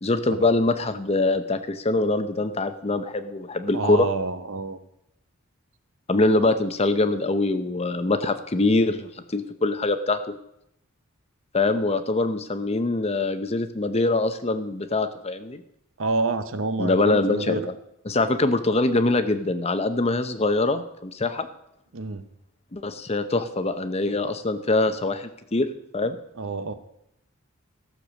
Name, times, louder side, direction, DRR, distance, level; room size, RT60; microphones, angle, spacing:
voice 1, 0.0-4.1 6.1-10.2 11.5-15.6 16.8-17.6 18.1-21.5 22.7-25.7 25.9-26.2, left 2 dB, 30° left, 10 dB, 0.7 m, -23 dB
voice 2, 3.7-4.8 16.0-17.7 21.9-22.2 26.4-26.7, right 3 dB, 65° right, 11 dB, 0.9 m, -28 dB
15.0 x 6.7 x 6.4 m, 0.80 s
head